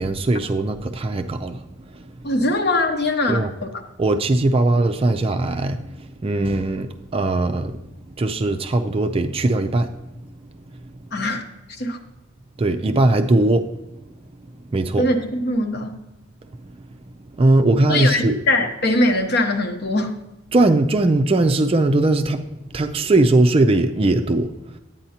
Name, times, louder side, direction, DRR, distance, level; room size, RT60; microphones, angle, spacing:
voice 1, 0.0-2.3 3.3-3.5 4.0-7.8 8.2-10.0 10.7-10.9 12.6-13.9 14.6-15.1 16.6-16.8 17.2-18.4 20.5-24.8, right 2 dB, 25° right, 0.4 m, -20 dB
voice 2, 2.2-3.4 11.1-11.4 11.8-12.0 15.0-15.9 17.9-20.2, left 1 dB, 50° left, 0.9 m, -21 dB
10.5 x 8.9 x 2.8 m
head